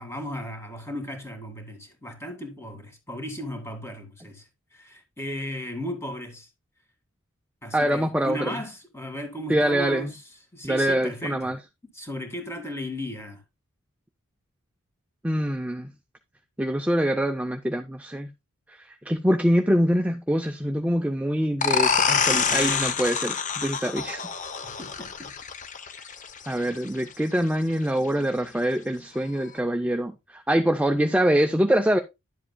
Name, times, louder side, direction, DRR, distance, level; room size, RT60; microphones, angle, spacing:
voice 1, 0.0-6.5 7.6-10.2 10.5-11.5 11.9-13.4 22.1-22.9 24.6-25.3 25.9-26.1, left 1 dB, 10° left, 1.9 m, -36 dB
voice 2, 7.7-8.5 9.5-10.1 10.6-11.6 15.2-15.9 16.6-18.3 18.8-24.2 26.5-32.0, equal, 5° right, 0.4 m, -24 dB
sound 1, 21.6-27.0, left 6 dB, 35° left, 0.8 m, -26 dB
11.0 x 7.6 x 2.2 m
head